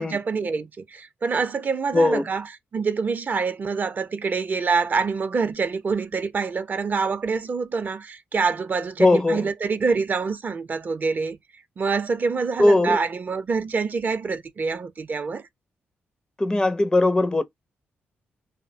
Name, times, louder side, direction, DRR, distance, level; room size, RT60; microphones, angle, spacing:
voice 1, 0.0-2.5 2.7-11.4 11.8-15.5, right 5 dB, 45° right, 0.4 m, -26 dB
voice 2, 1.9-2.3 9.0-9.5 12.6-13.0 16.4-17.4, left 2 dB, 20° left, 0.4 m, -19 dB
2.5 x 2.0 x 2.5 m
cardioid pair, 70°, 4 cm